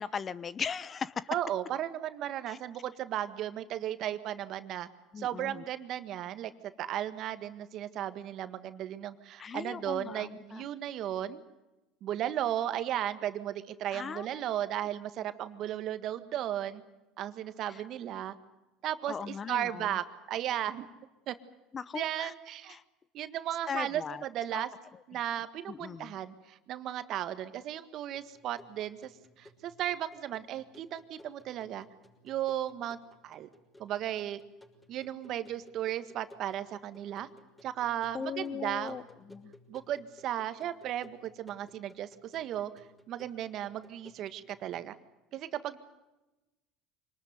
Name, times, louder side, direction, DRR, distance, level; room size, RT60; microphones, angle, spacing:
voice 1, 0.0-1.3 2.5-2.6 5.1-5.6 9.4-10.6 13.9-14.3 17.7-17.8 19.1-20.0 21.7-22.3 22.7-22.8 23.7-24.2 24.5-24.7 25.7-26.1 38.1-39.5, left 6 dB, 35° left, 18 dB, 0.9 m, -38 dB
voice 2, 1.3-4.9 5.2-6.5 6.8-11.4 12.0-16.8 17.2-18.4 18.8-20.9 21.3-21.4 21.9-22.8 23.1-24.7 25.1-29.1 29.4-31.8 32.2-33.0 33.2-33.5 33.8-34.4 34.9-37.3 37.6-39.0 39.7-42.7 43.1-44.9 45.3-45.8, right 11 dB, 55° right, 11 dB, 1.7 m, -35 dB
sound 1, 28.1-44.9, left 1 dB, 15° left, 6.1 m, -59 dB
25.5 x 19.5 x 9.5 m, 1.1 s
hypercardioid pair, 85°, 0 cm